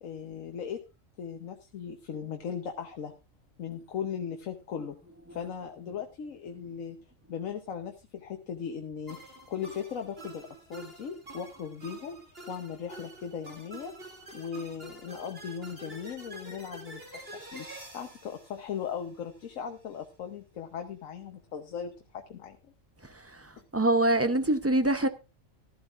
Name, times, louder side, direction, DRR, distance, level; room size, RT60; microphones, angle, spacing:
voice 1, 0.0-0.8 1.2-3.1 3.6-5.0 5.3-7.0 7.3-12.2 12.5-13.9 14.3-17.0 17.3-22.6, left 7 dB, 85° left, 1.4 m, -38 dB
sound 1, 9.1-19.5, right 2 dB, 45° right, 3.0 m, -47 dB
voice 2, 23.7-25.1, right 1 dB, 15° right, 0.5 m, -24 dB
15.0 x 13.5 x 2.5 m
omnidirectional pair, 1.4 m